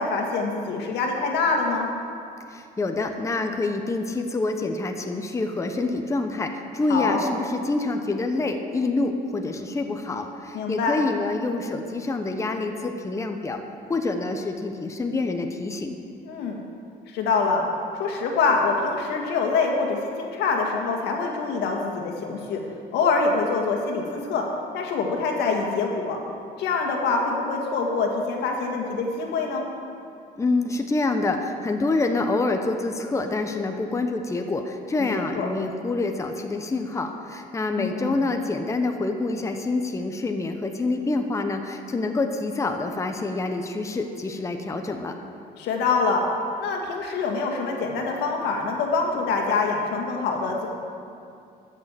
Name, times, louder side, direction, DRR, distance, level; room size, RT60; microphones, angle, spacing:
voice 1, 0.0-1.9 6.9-7.2 10.5-10.9 16.3-16.6 17.1-17.6 17.9-22.6 22.9-24.5 24.7-26.2 26.6-29.7 35.0-35.5 37.8-38.2 45.6-46.2 46.6-50.7, left 4 dB, 85° left, 1 dB, 1.9 m, -25 dB
voice 2, 2.5-13.6 13.9-16.0 30.4-45.2, left 3 dB, 15° left, 5 dB, 0.9 m, -27 dB
13.0 x 6.7 x 7.5 m, 2.5 s
cardioid pair, 110°, 17 cm